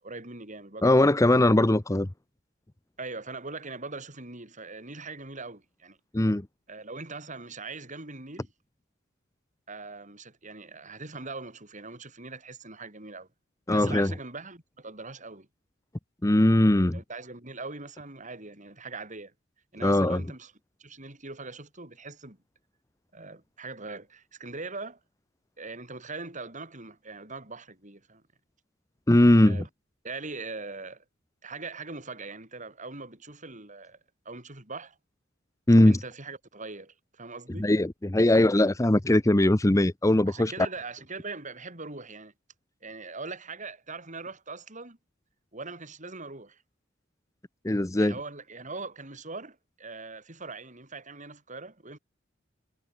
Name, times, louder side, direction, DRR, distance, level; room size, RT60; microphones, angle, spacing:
voice 1, 0.0-1.0 3.0-6.0 6.7-8.5 9.7-13.3 13.7-15.5 16.7-19.3 19.7-20.5 20.8-22.4 23.1-25.0 25.6-28.2 29.5-29.7 30.0-31.0 31.4-34.0 34.3-35.0 35.9-37.7 40.3-42.3 42.8-45.0 45.5-46.6 48.0-52.0, right 3 dB, 40° right, 5.5 m, -41 dB
voice 2, 0.8-2.1 6.1-6.4 13.7-14.1 16.2-17.0 19.8-20.2 29.1-29.6 35.7-36.0 37.6-40.5 47.6-48.1, left 1 dB, 15° left, 0.7 m, -20 dB
head